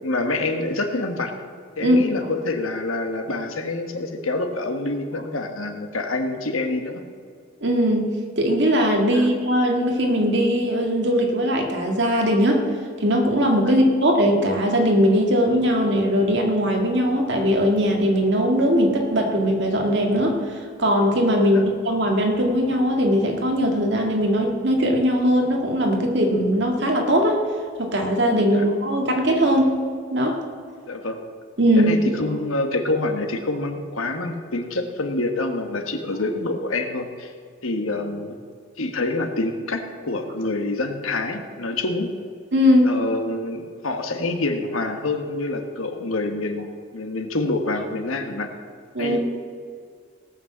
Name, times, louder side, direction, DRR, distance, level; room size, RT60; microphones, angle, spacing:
voice 1, 0.0-1.3 1.8-7.0 9.1-9.3 13.6-13.8 21.5-21.6 28.5-28.6 30.9-31.2 31.8-37.3 37.6-38.4 38.8-42.1 42.8-48.5 49.0-49.2, left 2 dB, 90° left, 5 dB, 1.4 m, -26 dB
voice 2, 7.6-8.1 8.4-12.6 13.0-27.4 27.8-29.8 30.1-30.4 31.6-31.9 42.5-42.9 48.9-49.2, equal, 60° right, 1 dB, 2.0 m, -20 dB
17.5 x 6.2 x 7.4 m, 2.1 s
head